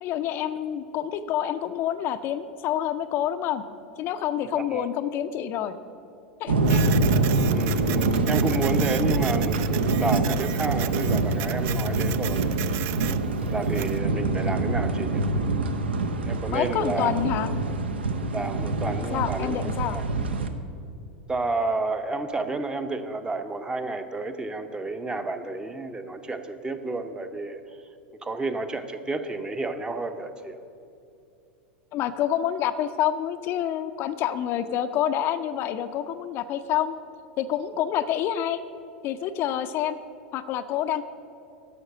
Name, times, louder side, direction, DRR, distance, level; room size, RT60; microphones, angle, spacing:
voice 1, 0.0-3.6 4.0-5.8 6.4-6.8 16.5-17.5 19.1-20.0 31.9-36.9 37.4-38.6 39.0-40.0 40.3-41.0, left 10 dB, 40° left, 9 dB, 0.4 m, -27 dB
voice 2, 4.5-4.8 7.5-12.5 13.5-15.3 16.3-17.1 18.3-20.0 21.3-27.6 28.2-30.6, right 2 dB, 15° right, 8 dB, 0.7 m, -31 dB
sound 1, 6.5-20.5, right 3 dB, 75° right, 0.7 m, -25 dB
Printer, 6.6-14.0, right 14 dB, 45° right, 0.3 m, -36 dB
11.0 x 6.5 x 6.3 m, 2.6 s
figure-of-eight pair, 85°, 6 cm